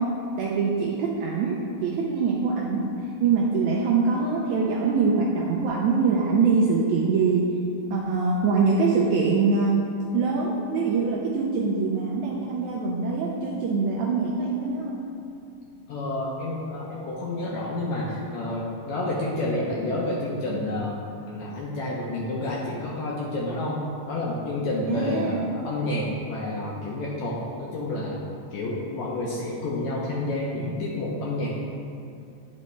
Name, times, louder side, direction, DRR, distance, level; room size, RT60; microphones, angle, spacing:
voice 1, 0.0-2.9 3.2-7.5 7.9-15.0 24.9-25.4, right 4 dB, 90° right, -3 dB, 1.7 m, -24 dB
voice 2, 15.9-21.0 21.3-28.2 28.5-31.5, left 2 dB, 75° left, -4 dB, 1.7 m, -29 dB
9.5 x 5.4 x 3.2 m, 2.6 s
omnidirectional pair, 3.8 m